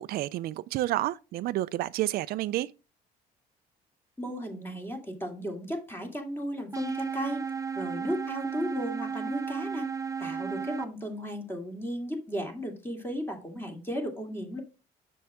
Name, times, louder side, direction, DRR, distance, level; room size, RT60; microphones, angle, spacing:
voice 1, 0.0-2.7, right 15 dB, 65° right, 0.4 m, -30 dB
voice 2, 4.2-7.4 7.7-9.9 10.2-14.6, equal, 15° left, 2.5 m, -35 dB
sound 1, 6.7-10.9, right 6 dB, 20° right, 0.8 m, -34 dB
7.0 x 6.3 x 3.5 m
cardioid pair, 110°, 17 cm